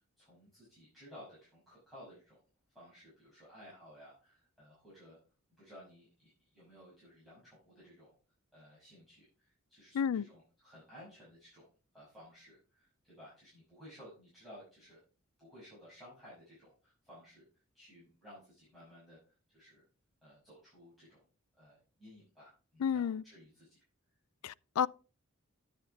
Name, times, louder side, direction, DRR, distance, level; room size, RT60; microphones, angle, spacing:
voice 1, 0.2-2.4 2.7-5.2 5.6-8.1 8.5-11.7 11.9-15.0 15.4-19.2 19.5-19.8 20.2-21.2 21.6-23.8, equal, ahead, 6.2 m, -56 dB
voice 2, 9.9-10.3 22.8-23.2 24.4-24.9, left 7 dB, 85° left, 0.4 m, -31 dB
11.5 x 7.9 x 3.5 m
head